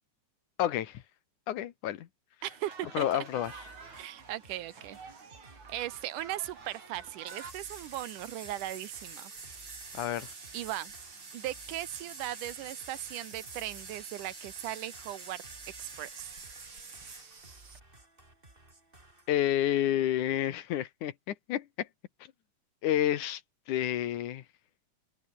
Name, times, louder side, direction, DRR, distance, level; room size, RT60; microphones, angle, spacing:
voice 1, 0.6-1.0 1.5-2.1 2.9-3.5 9.9-10.3 19.3-21.9 22.8-23.4 23.7-24.4, left 12 dB, 70° left, 2.6 m, -29 dB
sound 1, 2.4-7.5, right 5 dB, 60° right, 5.5 m, -49 dB
voice 2, 2.4-3.2 4.0-5.0 5.7-9.3 10.5-10.9 11.3-15.4 15.8-16.3, right 14 dB, 75° right, 2.4 m, -38 dB
sound 2, 3.4-19.4, right 2 dB, 15° right, 4.6 m, -58 dB
sound 3, 7.3-17.8, right 4 dB, 40° right, 5.0 m, -47 dB
omnidirectional pair, 3.8 m